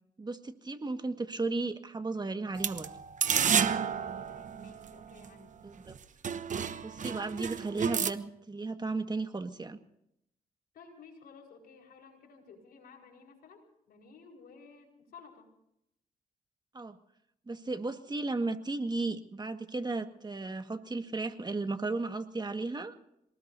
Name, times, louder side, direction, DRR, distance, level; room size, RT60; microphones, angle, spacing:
voice 1, 0.2-2.9 5.6-5.9 6.8-9.8 16.7-17.0 17.5-23.0, right 3 dB, 30° right, 7 dB, 1.7 m, -35 dB
sound 1, 2.6-5.3 5.9-6.0 6.2-8.1, right 7 dB, 55° right, 1.1 m, -31 dB
voice 2, 3.2-5.6 10.7-15.5, left 5 dB, 80° left, 2 dB, 4.9 m, -54 dB
27.0 x 19.5 x 2.7 m, 0.79 s
cardioid pair, 75°, 16 cm